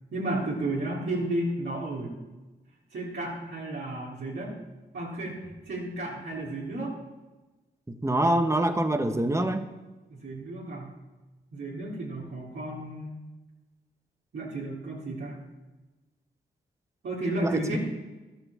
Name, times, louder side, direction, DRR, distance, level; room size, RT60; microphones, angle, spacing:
voice 1, 0.1-2.2 2.9-4.6 4.9-7.0 10.1-11.0 11.5-13.2 14.3-15.4 17.0-17.8, right 2 dB, 75° right, -7 dB, 3.5 m, -33 dB
voice 2, 7.9-9.7 17.4-17.8, right 1 dB, 15° right, 7 dB, 1.3 m, -25 dB
13.0 x 8.6 x 7.1 m, 1.1 s
cardioid pair, 55°, 19 cm